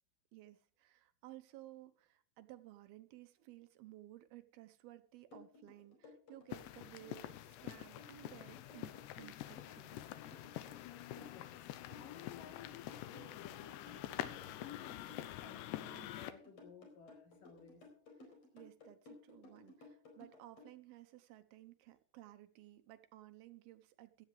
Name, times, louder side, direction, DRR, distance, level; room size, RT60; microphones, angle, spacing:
voice 1, 0.3-10.1 18.2-24.3, right 15 dB, 70° right, 2.6 m, -57 dB
sound 1, 5.3-20.7, left 3 dB, 35° left, 5.2 m, -58 dB
sound 2, 6.5-16.3, left 13 dB, 80° left, 3.1 m, -47 dB
voice 2, 11.2-11.7 11.9-17.9, left 7 dB, 55° left, 4.1 m, -56 dB
16.5 x 13.5 x 3.3 m
omnidirectional pair, 5.1 m